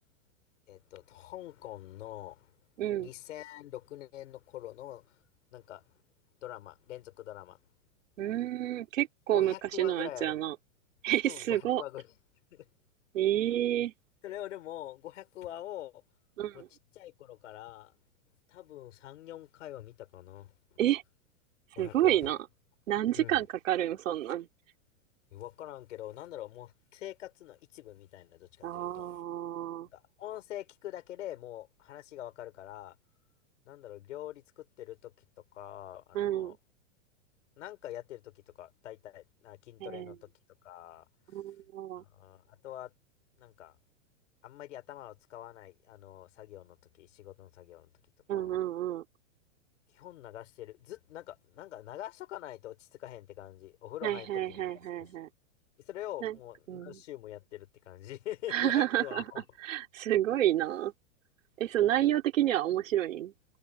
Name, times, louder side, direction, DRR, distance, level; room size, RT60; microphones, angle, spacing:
voice 1, 0.7-2.5 3.0-5.2 5.5-5.8 6.4-7.6 9.3-10.4 11.2-12.1 12.5-12.7 14.2-16.0 16.5-16.6 16.9-17.9 18.5-20.5 21.7-22.3 23.1-23.4 25.3-29.2 29.9-33.0 33.6-35.1 35.5-36.6 37.6-40.3 40.6-41.1 41.9-42.9 43.4-43.8 44.4-47.9 48.3-48.5 49.9-54.6 55.0-55.1 55.9-59.4 61.8-62.0, left 13 dB, 70° left, 4.8 m, -44 dB
voice 2, 2.8-3.1 8.2-10.5 11.0-11.8 13.1-13.9 16.4-16.7 20.8-21.0 21.8-22.4 22.9-24.5 28.6-29.9 36.1-36.6 39.8-40.2 41.3-42.0 48.3-49.0 54.0-55.3 56.2-56.4 56.7-57.0 58.5-59.3 59.7-60.9 61.6-63.3, right 12 dB, 80° right, 3.8 m, -29 dB
supercardioid pair, 165°, 38 cm